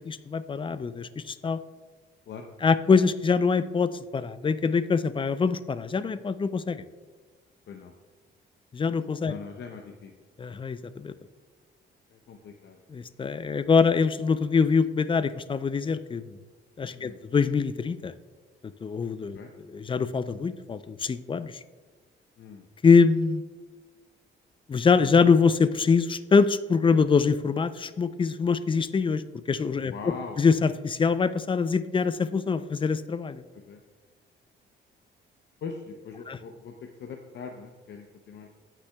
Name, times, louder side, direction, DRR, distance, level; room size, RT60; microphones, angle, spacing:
voice 1, 0.0-1.6 2.6-6.8 8.7-9.3 10.4-11.1 12.9-16.4 16.8-18.1 18.8-21.6 22.8-23.4 24.7-29.2 29.5-29.9 30.4-33.4 36.3-36.4, left 5 dB, 25° left, 14 dB, 0.4 m, -24 dB
voice 2, 9.3-10.1 12.1-12.8 16.9-17.2 19.3-19.5 22.4-22.6 29.9-30.4 33.5-33.8 35.6-38.5, left 5 dB, 65° left, 3 dB, 0.7 m, -41 dB
16.0 x 5.9 x 2.3 m, 1.3 s
cardioid pair, 90°, 20 cm